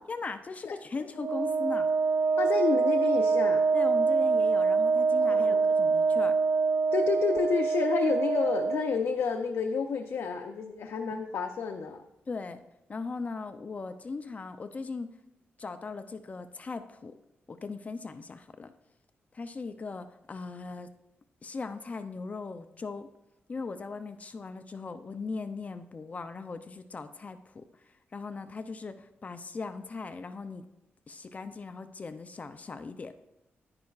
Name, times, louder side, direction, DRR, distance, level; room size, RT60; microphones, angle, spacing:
voice 1, 0.1-1.9 3.7-6.4 12.3-12.6 12.9-15.1 15.6-17.1 17.5-18.7 19.3-20.9 21.4-23.1 23.5-27.7 28.1-30.6 31.1-33.1, left 4 dB, 35° left, 10 dB, 0.4 m, -39 dB
Wind instrument woodwind instrument, 1.2-9.0, right 4 dB, 65° right, 0.3 m, -25 dB
voice 2, 2.4-3.6 5.2-5.6 6.9-12.0, left 6 dB, 80° left, 4 dB, 0.6 m, -30 dB
10.5 x 9.7 x 2.4 m, 0.91 s
wide cardioid pair, 135°, 4 cm